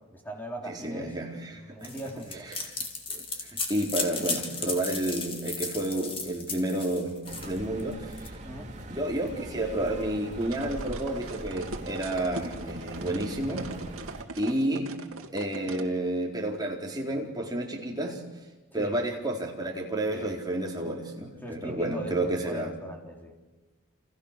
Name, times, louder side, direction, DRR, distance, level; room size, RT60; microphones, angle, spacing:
voice 1, 0.1-1.1 1.5-2.5 8.4-8.7 18.7-19.0 20.1-20.4 21.4-23.3, equal, 10° left, 1 dB, 4.0 m, -40 dB
voice 2, 0.7-1.9 2.5-2.7 3.1-7.2 7.4-8.4 8.9-13.7 14.4-14.9 15.3-18.2 18.7-22.7, right 1 dB, 20° right, -1 dB, 4.3 m, -31 dB
sound 1, 1.8-8.3, left 4 dB, 25° left, 3.3 m, -35 dB
sound 2, 7.2-14.2, right 1 dB, 35° right, 2.7 m, -41 dB
sound 3, 10.4-15.9, right 2 dB, 75° right, 2.4 m, -40 dB
29.5 x 29.0 x 6.8 m, 1.2 s
head